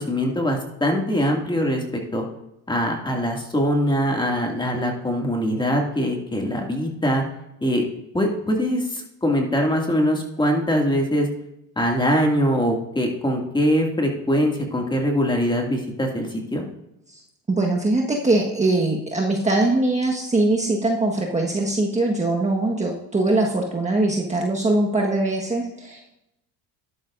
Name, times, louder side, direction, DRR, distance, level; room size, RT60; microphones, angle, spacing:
voice 1, 0.0-2.2 2.7-7.2 7.6-7.8 8.1-11.3 11.8-16.6, equal, 10° left, 1 dB, 2.4 m, -22 dB
voice 2, 17.5-26.2, right 2 dB, 15° right, -1 dB, 1.5 m, -22 dB
12.0 x 11.5 x 2.6 m, 0.86 s
supercardioid pair, 90°, 39 cm